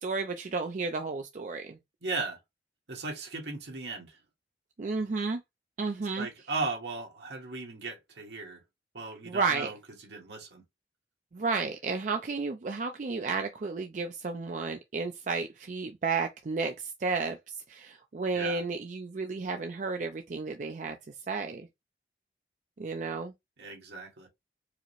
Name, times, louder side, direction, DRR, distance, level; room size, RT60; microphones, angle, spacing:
voice 1, 0.0-1.8 4.8-5.4 5.8-6.3 9.3-9.7 11.3-21.0 21.3-21.7 22.8-23.3, right 4 dB, 45° right, 0.4 m, -32 dB
voice 2, 2.0-2.4 2.9-4.2 6.2-8.6 8.9-9.8 10.0-10.6 18.3-18.6 23.6-24.3, right 3 dB, 75° right, 1.4 m, -36 dB
4.8 x 2.1 x 3.1 m
head